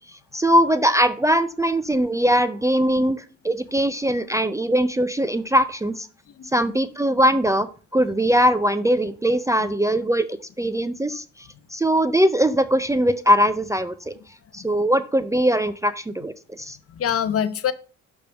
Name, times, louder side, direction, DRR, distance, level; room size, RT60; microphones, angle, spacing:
voice 1, 0.3-6.1 6.5-10.3 10.6-11.2 11.7-14.1 14.5-16.8, equal, 10° right, 10 dB, 0.4 m, -21 dB
voice 2, 6.3-6.7 9.6-9.7 14.6-14.9 16.9-17.7, left 9 dB, 50° left, 14 dB, 0.7 m, -26 dB
6.5 x 3.6 x 5.7 m, 0.37 s
cardioid pair, 90°, 30 cm